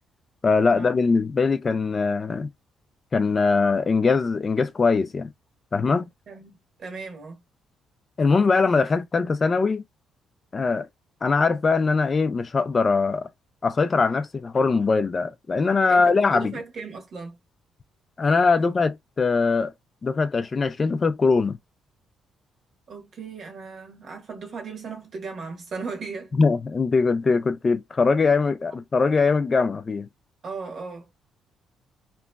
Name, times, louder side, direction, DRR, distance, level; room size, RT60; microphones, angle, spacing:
voice 1, 0.4-2.5 3.1-5.3 5.7-6.1 8.2-9.8 10.5-10.9 11.2-13.3 13.6-16.5 18.2-19.7 20.0-21.6 26.4-30.1, left 4 dB, 35° left, 0.3 m, -21 dB
voice 2, 6.3-7.4 15.9-17.4 22.9-26.3 30.4-31.1, right 4 dB, 60° right, 1.2 m, -37 dB
3.0 x 2.4 x 2.2 m
cardioid pair, 90°, 0 cm